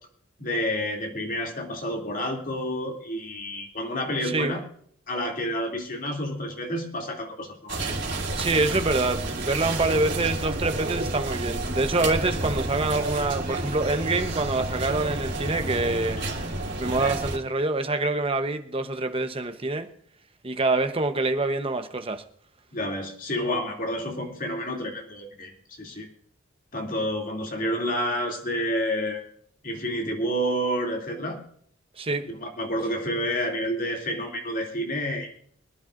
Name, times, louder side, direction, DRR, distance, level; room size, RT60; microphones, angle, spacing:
voice 1, 0.4-4.6 5.1-8.0 16.2-16.3 22.7-25.5 25.8-26.1 26.7-29.2 29.6-31.4 32.2-35.3, equal, 45° left, 2.8 m, -29 dB
voice 2, 4.2-4.5 8.3-16.2 16.8-19.9 20.4-22.2 32.0-32.2, right 2 dB, 30° right, 1.0 m, -26 dB
sound 1, 7.7-17.4, right 2 dB, 60° right, 3.6 m, -30 dB
24.0 x 10.5 x 2.6 m
head